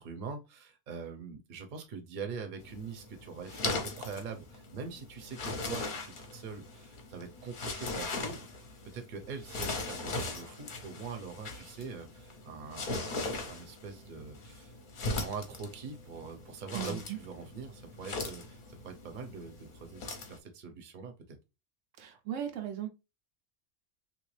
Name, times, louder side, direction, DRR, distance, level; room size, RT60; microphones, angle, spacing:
voice 1, 0.0-8.7 8.9-14.7 15.0-21.4, right 5 dB, 45° right, 0.8 m, -43 dB
sound 1, 2.6-20.4, left 3 dB, 50° left, 0.8 m, -40 dB
voice 2, 16.7-17.2 22.0-22.9, right 9 dB, 80° right, 1.0 m, -37 dB
3.1 x 2.6 x 3.1 m
omnidirectional pair, 1.3 m